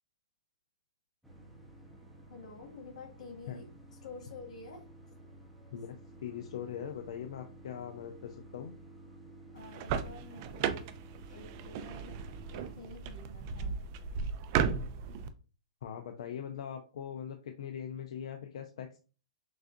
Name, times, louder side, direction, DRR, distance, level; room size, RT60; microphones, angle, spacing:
sound 1, 1.2-12.8, right 2 dB, ahead, 0.7 m, -53 dB
voice 1, 2.3-3.6 4.0-4.8 9.5-10.9 11.3-12.2 12.5-13.7, left 3 dB, 85° left, 0 dB, 2.3 m, -49 dB
voice 2, 5.7-8.7 15.8-19.0, left 9 dB, 60° left, 6 dB, 0.5 m, -41 dB
sound 2, 9.6-15.3, right 7 dB, 35° right, 0.4 m, -35 dB
6.2 x 2.5 x 2.6 m, 0.36 s
hypercardioid pair, 160°, 4 cm